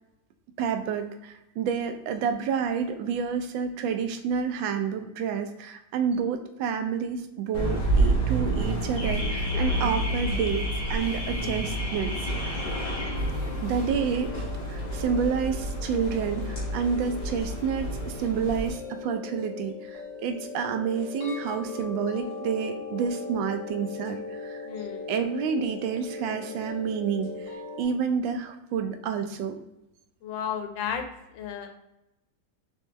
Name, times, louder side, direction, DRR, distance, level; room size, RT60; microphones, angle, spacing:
voice 1, 0.6-12.1 12.4-12.6 13.6-24.6 25.1-29.6, right 6 dB, 85° right, 6 dB, 1.3 m, -29 dB
Car / Alarm, 7.5-18.7, right 1 dB, 55° left, 2.0 m, -29 dB
voice 2, 11.3-11.6 24.6-25.1 30.2-31.0 31.3-31.7, left 8 dB, 85° left, 5 dB, 1.4 m, -33 dB
sound 1, 12.6-27.8, left 3 dB, 70° left, 1.9 m, -39 dB
4.3 x 3.3 x 3.1 m, 0.90 s
omnidirectional pair, 2.0 m